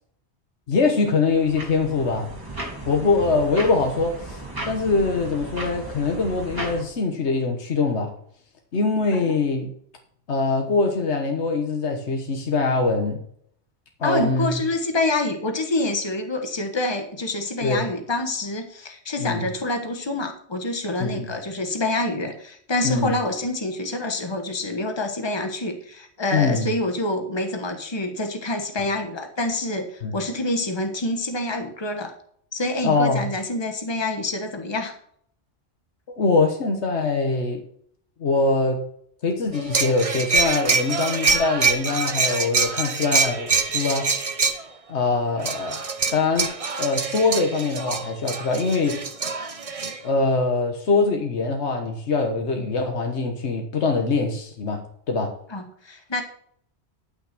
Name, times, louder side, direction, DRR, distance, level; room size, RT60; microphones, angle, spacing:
voice 1, 0.7-2.3 2.9-4.4 4.6-8.1 8.7-9.7 10.3-13.2 14.0-14.6 17.6-17.8 19.2-19.5 21.0-21.3 22.8-23.1 26.3-26.7 30.0-30.1 32.8-33.2 36.1-37.6 38.2-38.8 39.2-44.1 44.9-45.8 46.1-46.5 46.8-49.0 50.0-55.3, left 3 dB, 85° left, 3 dB, 1.6 m, -23 dB
sound 1, 1.0-6.8, right 2 dB, 20° right, 2.9 m, -35 dB
voice 2, 14.0-32.1 32.5-35.0 55.5-56.2, left 2 dB, 25° left, 5 dB, 1.3 m, -27 dB
sound 2, 39.5-44.6 45.4-50.0, right 4 dB, 35° right, 0.9 m, -25 dB
12.0 x 6.1 x 6.0 m, 0.64 s
omnidirectional pair, 1.1 m